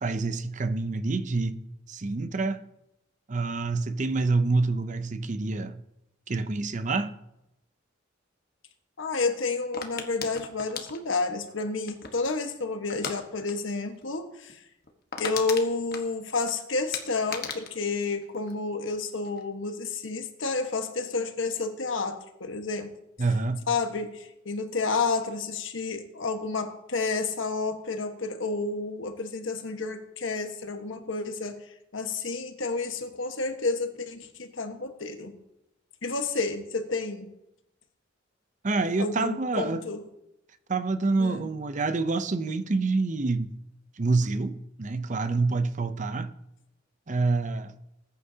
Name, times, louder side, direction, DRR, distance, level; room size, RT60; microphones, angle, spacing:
voice 1, 0.0-1.6 1.9-2.6 3.3-5.8 6.3-7.1 23.2-23.7 38.6-39.8 40.7-43.5 44.0-46.3 47.1-47.8, right 3 dB, 40° right, 0.6 m, -27 dB
voice 2, 9.0-14.6 15.2-22.9 23.7-31.6 31.9-35.3 36.0-37.3 39.0-40.0 41.2-41.4, left 3 dB, 80° left, 1.4 m, -30 dB
sound 1, 9.7-12.3 12.9-13.2 13.5-13.7 14.0-14.1 14.5-14.6 14.8-16.5 16.9-19.0 19.2-19.7, left 6 dB, 50° left, 1.3 m, -37 dB
20.0 x 9.7 x 2.8 m
head